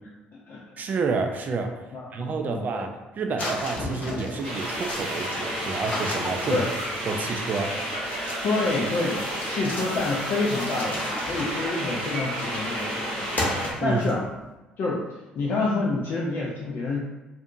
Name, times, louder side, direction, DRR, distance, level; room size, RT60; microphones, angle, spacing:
voice 1, 0.8-1.8 2.1-6.6 7.1-7.8 13.8-14.0, right 4 dB, 40° right, 4 dB, 0.4 m, -29 dB
voice 2, 1.9-2.8 6.5-6.7 8.4-13.2 13.5-14.3 14.8-17.0, left 3 dB, 50° left, -5 dB, 0.4 m, -28 dB
sound 1, 3.4-7.3 8.1-12.8 13.4-14.4, left 1 dB, 35° left, 0.8 m, -35 dB
sound 2, 4.4-13.7, equal, 85° right, 0.8 m, -31 dB
2.6 x 2.5 x 2.3 m, 1.1 s
figure-of-eight pair, 50°, 5 cm